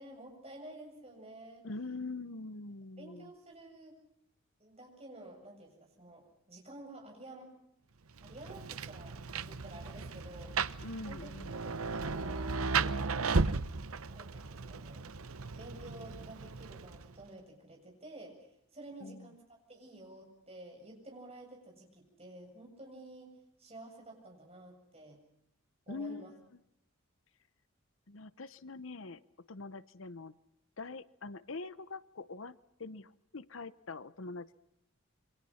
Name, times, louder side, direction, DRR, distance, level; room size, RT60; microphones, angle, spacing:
voice 1, 0.0-1.6 3.0-4.0 4.6-7.5 8.2-9.2 9.4-10.5 11.1-13.0 14.1-15.1 15.6-18.4 18.7-23.3 23.6-25.2 25.9-26.3, right 1 dB, 30° right, 1 dB, 7.7 m, -51 dB
voice 2, 1.6-3.3 10.8-11.6 19.0-19.3 25.9-26.6 28.1-29.2 29.5-30.4 30.8-34.5, left 3 dB, 70° left, 16 dB, 0.9 m, -44 dB
Rain, 8.2-17.2, right 4 dB, 85° right, 0.9 m, -35 dB
28.0 x 24.5 x 5.7 m, 0.77 s
head